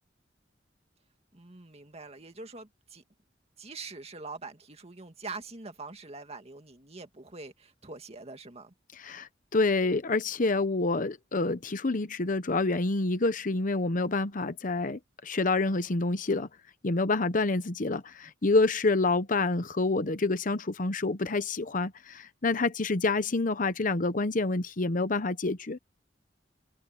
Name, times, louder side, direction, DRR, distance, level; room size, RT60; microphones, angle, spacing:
voice 1, 1.3-3.0 3.6-8.7, right 3 dB, 35° right, 2.1 m, -44 dB
voice 2, 9.0-16.5 16.8-25.8, left 3 dB, 45° left, 0.9 m, -27 dB
head